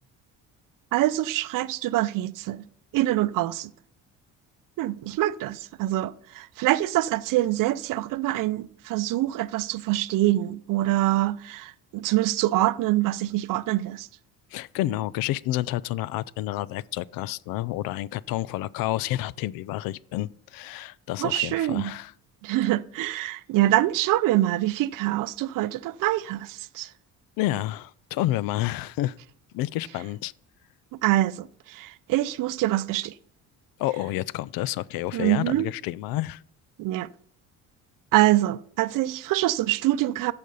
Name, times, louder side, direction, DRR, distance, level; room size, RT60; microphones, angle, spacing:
voice 1, 0.9-2.6 2.9-3.7 4.8-14.1 21.2-21.9 22.4-26.9 31.0-33.1 35.1-35.7 36.8-37.1 38.1-40.3, right 16 dB, 65° right, 0.6 m, -25 dB
voice 2, 14.5-22.1 27.4-29.1 29.5-30.3 33.8-36.4, left 15 dB, 75° left, 0.5 m, -29 dB
14.5 x 5.2 x 5.4 m
cardioid pair, 120°, 35 cm